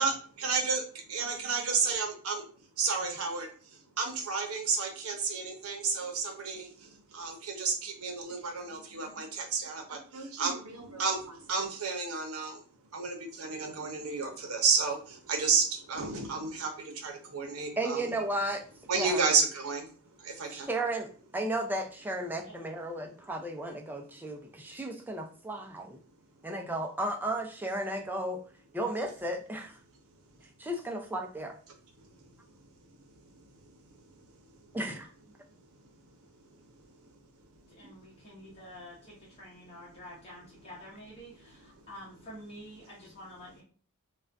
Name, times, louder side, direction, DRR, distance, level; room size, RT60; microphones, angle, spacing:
voice 1, 0.4-0.8 1.1-2.5 2.8-12.6 12.9-18.1 18.9-19.9 20.2-20.7 32.0-32.6 33.4-33.6 33.8-34.3 34.6-34.8 35.8-35.9 41.8-41.9, right 4 dB, 70° right, 4 dB, 0.7 m, -32 dB
voice 2, 17.8-18.6 19.0-19.2 20.5-26.0 26.4-28.4 28.7-29.8 30.6-31.5 34.7-35.1, right 1 dB, 10° right, 2 dB, 0.4 m, -34 dB
voice 3, 37.7-43.6, equal, 25° left, -6 dB, 0.8 m, -48 dB
2.4 x 2.2 x 3.4 m, 0.40 s
head